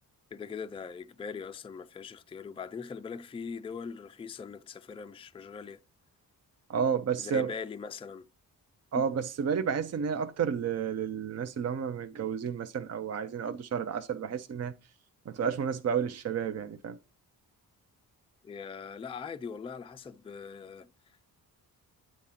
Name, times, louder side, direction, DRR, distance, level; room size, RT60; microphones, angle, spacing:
voice 1, 0.3-5.8 7.2-8.3 9.0-9.1 18.4-21.3, left 6 dB, 15° left, 0.4 m, -41 dB
voice 2, 6.7-7.5 8.9-14.7 15.3-17.0, right 7 dB, 45° right, 0.6 m, -31 dB
8.8 x 3.7 x 5.6 m
wide cardioid pair, 125°, 36 cm